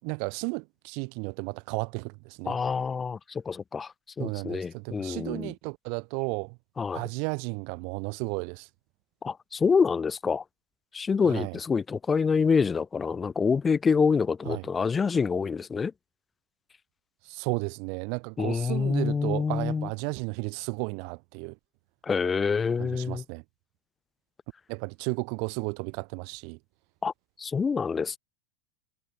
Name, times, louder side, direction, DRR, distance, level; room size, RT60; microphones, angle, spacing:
voice 1, 0.0-2.6 4.2-6.6 6.9-8.7 11.2-11.6 14.4-14.7 17.2-21.6 22.8-23.4 24.7-26.6, right 39 dB, 55° right, 0.9 m, -33 dB
voice 2, 2.5-3.9 4.2-5.5 6.8-7.0 9.2-10.4 10.9-15.9 18.4-19.9 22.0-23.2 27.0-27.1 27.4-28.2, left 5 dB, 20° left, 0.8 m, -26 dB
hypercardioid pair, 100°, 0 cm